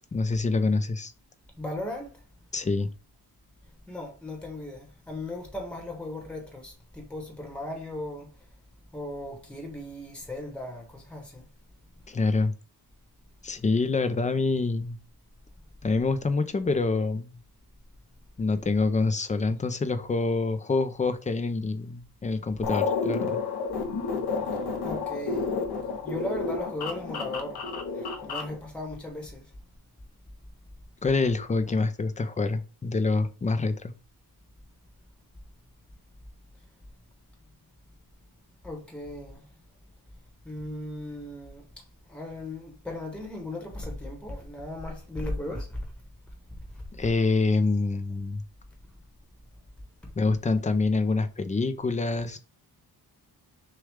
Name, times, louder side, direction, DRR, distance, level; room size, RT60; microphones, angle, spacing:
voice 1, 0.1-1.1 2.5-2.9 12.1-12.5 13.4-15.0 15.8-17.4 18.4-23.4 31.0-33.9 46.9-48.4 50.2-52.4, left 3 dB, 20° left, 0.4 m, -26 dB
voice 2, 1.6-2.2 3.9-8.3 8.9-11.4 24.5-25.6 26.0-29.5 38.6-39.4 40.4-41.6 42.1-45.9 46.7-46.8 50.0-50.1, left 1 dB, 5° left, 1.1 m, -37 dB
sound 1, 22.6-28.6, left 4 dB, 75° left, 0.9 m, -30 dB
6.2 x 2.3 x 3.5 m
wide cardioid pair, 160°, 39 cm